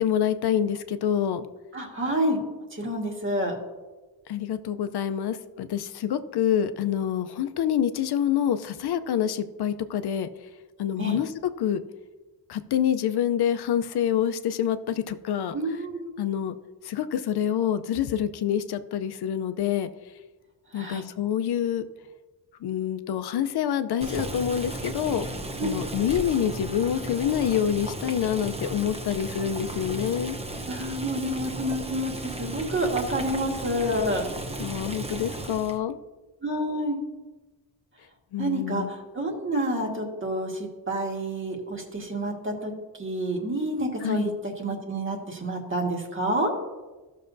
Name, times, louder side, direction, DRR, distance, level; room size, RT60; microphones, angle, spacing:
voice 1, 0.0-1.4 4.3-10.3 10.8-11.3 11.6-11.8 12.5-15.5 16.2-16.5 16.9-19.9 20.7-21.8 22.6-25.3 25.6-30.4 34.6-36.0 38.3-38.9 44.0-44.4, left 9 dB, 80° left, 11 dB, 0.6 m, -26 dB
voice 2, 1.7-2.4 2.7-3.6 11.0-11.2 15.5-16.1 20.7-21.1 30.7-34.3 36.4-37.0 38.4-42.7 43.0-46.5, right 1 dB, 30° right, 1 dB, 1.7 m, -28 dB
Boiling, 24.0-35.8, right 2 dB, 15° right, 0.7 m, -35 dB
15.5 x 6.5 x 2.6 m, 1.2 s
wide cardioid pair, 135°, 39 cm